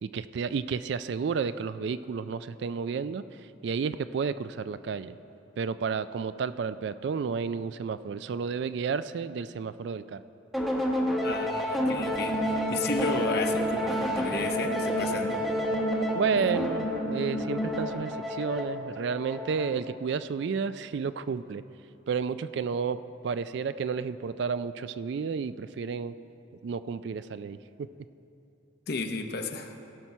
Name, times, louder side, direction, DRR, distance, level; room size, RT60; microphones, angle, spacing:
voice 1, 0.0-3.2 3.6-5.2 5.6-10.2 16.1-21.6 22.1-23.0 23.2-26.1 26.6-27.6, right 5 dB, 55° right, 14 dB, 0.3 m, -31 dB
sound 1, 10.5-19.9, left 1 dB, ahead, 0.8 m, -31 dB
voice 2, 11.2-12.4 12.7-15.4 16.3-16.5 28.9-29.7, left 3 dB, 50° left, 6 dB, 0.7 m, -32 dB
sound 2, 11.7-17.9, right 1 dB, 85° left, 2.1 m, -33 dB
17.0 x 6.0 x 5.5 m, 2.8 s
head